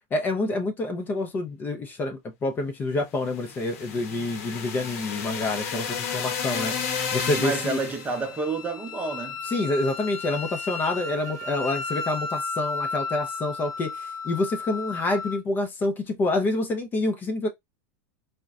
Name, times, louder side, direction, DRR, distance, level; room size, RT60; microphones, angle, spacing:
voice 1, 0.1-7.8 9.4-17.5, left 2 dB, 20° left, 0.5 m, -27 dB
sound 1, 3.3-8.2, left 6 dB, 70° left, 0.8 m, -32 dB
Wind instrument woodwind instrument, 7.2-15.4, left 4 dB, 40° left, 1.0 m, -34 dB
voice 2, 7.4-9.4, right 4 dB, 15° right, 0.6 m, -29 dB
3.8 x 2.1 x 2.3 m
supercardioid pair, 135°, 9 cm